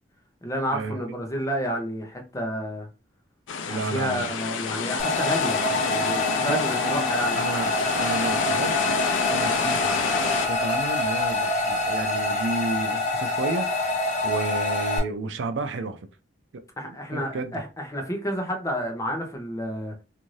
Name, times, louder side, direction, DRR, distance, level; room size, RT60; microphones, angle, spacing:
voice 1, 0.4-2.9 3.6-7.4 16.8-19.9, equal, 15° left, 0.7 m, -30 dB
sound 1, 3.5-10.5, left 5 dB, 75° left, 0.4 m, -29 dB
voice 2, 3.7-4.3 6.1-7.7 8.0-8.9 9.3-10.1 10.5-13.9 14.2-16.0 16.5-17.6, right 3 dB, 75° right, 0.5 m, -32 dB
sound 2, 5.0-15.0, left 2 dB, 40° left, 1.2 m, -26 dB
2.6 x 2.5 x 3.1 m
head